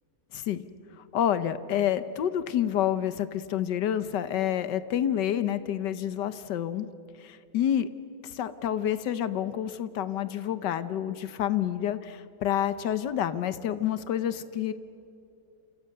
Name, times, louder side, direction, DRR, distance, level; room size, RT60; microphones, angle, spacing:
voice 1, 0.3-0.6 1.1-6.9 7.2-7.9 8.2-14.7, left 10 dB, 90° left, 13 dB, 1.6 m, -28 dB
29.0 x 28.0 x 6.7 m, 2.7 s
omnidirectional pair, 1.8 m